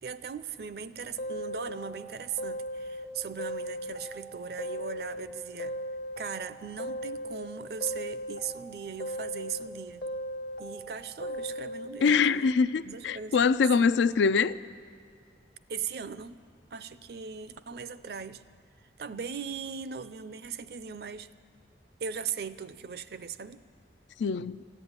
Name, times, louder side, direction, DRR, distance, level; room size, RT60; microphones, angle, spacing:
voice 1, 0.0-5.8 6.2-10.1 10.6-12.6 12.8-13.5 13.8-14.1 15.7-16.4 16.7-18.4 19.0-21.3 22.0-23.6, right 6 dB, 60° right, 0.5 m, -39 dB
sound 1, 1.2-3.1 3.4-5.3 5.6-7.5 7.8-9.7 10.0-11.9, equal, 65° left, 1.0 m, -37 dB
voice 2, 12.0-14.6 24.2-24.6, left 5 dB, 90° left, 0.4 m, -24 dB
14.5 x 9.0 x 9.5 m
head